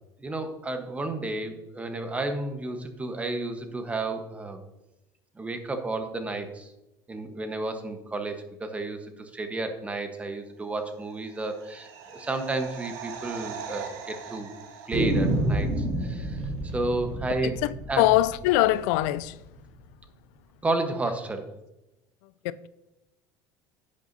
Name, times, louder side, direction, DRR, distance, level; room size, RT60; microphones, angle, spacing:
voice 1, 0.2-4.6 5.4-6.7 7.1-14.5 14.9-16.4 16.7-17.6 17.9-18.0 20.6-21.5, right 2 dB, 15° right, 1.1 m, -32 dB
sound 1, 11.0-15.9 16.1-16.2, right 6 dB, 80° right, 1.5 m, -42 dB
sound 2, 12.1-12.2 12.6-12.7 12.9-13.0 13.7-14.2 14.9-19.7, right 1 dB, 60° right, 3.4 m, -30 dB
voice 2, 17.4-19.4 22.4-22.7, left 16 dB, 80° left, 0.4 m, -23 dB
11.0 x 8.5 x 2.7 m
cardioid pair, 135°, 9 cm